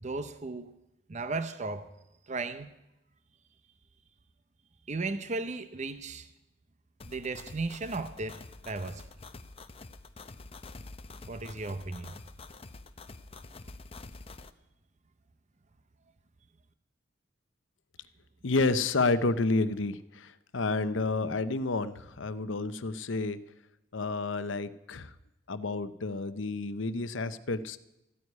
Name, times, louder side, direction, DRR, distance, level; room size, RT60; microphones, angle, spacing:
voice 1, 0.0-0.7 1.1-1.9 2.3-2.7 4.9-6.3 7.1-9.0 11.3-12.1, right 3 dB, 35° right, 0.7 m, -35 dB
sound 1, 7.0-14.5, left 3 dB, 30° left, 0.7 m, -47 dB
voice 2, 18.4-23.4 23.9-25.1 25.5-27.8, left 3 dB, 75° left, 0.8 m, -30 dB
14.0 x 9.5 x 9.5 m
head